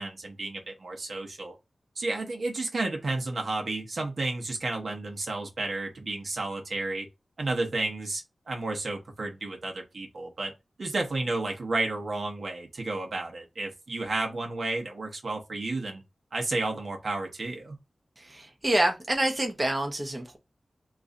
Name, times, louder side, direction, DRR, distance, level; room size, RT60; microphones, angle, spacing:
voice 1, 0.0-1.6 2.0-7.1 7.4-10.5 10.8-16.0 16.3-17.8, right 2 dB, 65° right, 0.9 m, -32 dB
voice 2, 18.2-20.4, right 1 dB, 25° right, 0.7 m, -27 dB
3.0 x 2.5 x 3.8 m
wide cardioid pair, 100°, 0 cm